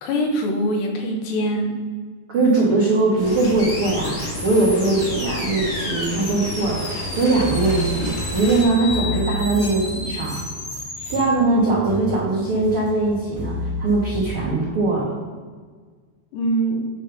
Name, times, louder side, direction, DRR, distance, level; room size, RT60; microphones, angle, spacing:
voice 1, 0.0-1.7 16.3-16.9, right 1 dB, 80° left, 2 dB, 3.3 m, -23 dB
voice 2, 2.3-10.4 11.1-15.2, right 2 dB, 80° right, -5 dB, 1.2 m, -21 dB
sound 1, 3.2-8.6, left 2 dB, 60° left, 1.2 m, -33 dB
sound 2, 3.2-11.2, left 2 dB, 40° left, 1.8 m, -32 dB
sound 3, 6.5-14.4, equal, 25° right, 1.7 m, -32 dB
9.6 x 3.5 x 5.9 m, 1.5 s
omnidirectional pair, 5.0 m